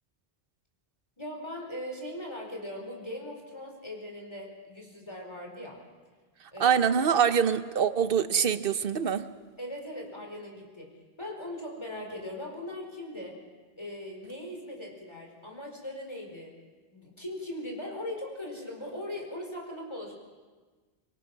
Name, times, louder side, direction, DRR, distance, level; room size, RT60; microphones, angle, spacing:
voice 1, 1.2-5.8 6.5-7.2 9.6-13.4 13.8-16.6 16.9-20.1, left 1 dB, 25° left, 0 dB, 4.9 m, -40 dB
voice 2, 6.6-9.2, right 7 dB, 60° right, 12 dB, 1.1 m, -24 dB
25.5 x 23.0 x 6.1 m, 1.4 s
omnidirectional pair, 1.1 m